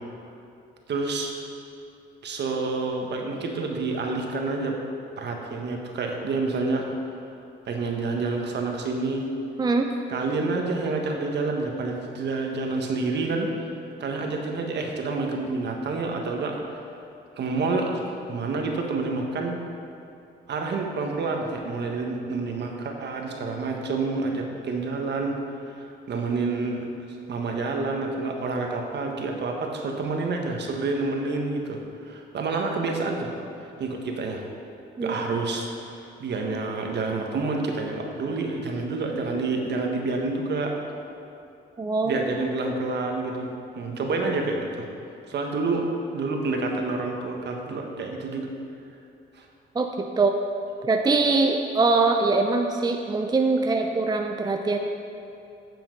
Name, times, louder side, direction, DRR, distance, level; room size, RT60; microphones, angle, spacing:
voice 1, 0.9-1.3 2.2-4.8 5.2-6.9 7.7-9.3 10.1-13.7 14.0-16.6 17.4-19.6 20.5-25.4 25.8-26.9 27.3-33.3 33.8-34.5 35.0-40.7 42.0-44.9 45.3-48.5 49.4-49.5, right 3 dB, 60° right, 2 dB, 1.4 m, -28 dB
voice 2, 41.8-42.2 49.8-50.3 50.8-54.8, right 3 dB, 20° right, 4 dB, 0.5 m, -23 dB
9.4 x 7.0 x 5.3 m, 2.6 s
cardioid pair, 90°, 20 cm